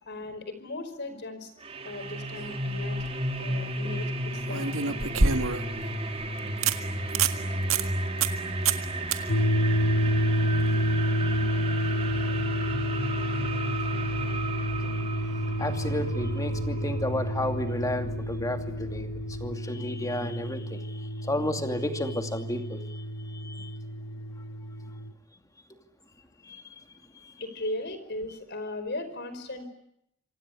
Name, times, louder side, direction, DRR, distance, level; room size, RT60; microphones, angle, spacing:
voice 1, 0.0-1.5 1.8-3.0 3.4-5.3 27.4-29.7, left 2 dB, 55° left, 11 dB, 5.0 m, -37 dB
sound 1, 1.6-19.5, right 1 dB, 30° right, 3.8 m, -34 dB
sound 2, 2.7-3.1 4.5-5.8 6.2-6.3 6.6-6.8 7.1-7.4 7.7-7.8 8.2-8.4 8.7-8.9 9.1-9.2 12.3-12.4, right 5 dB, 90° right, 1.8 m, -25 dB
sound 3, 9.3-25.1, equal, 80° left, 3.1 m, -29 dB
voice 2, 15.6-23.8 26.4-26.8 27.1-27.3, left 1 dB, 15° left, 5 dB, 2.6 m, -33 dB
27.0 x 25.5 x 8.4 m, 0.77 s
head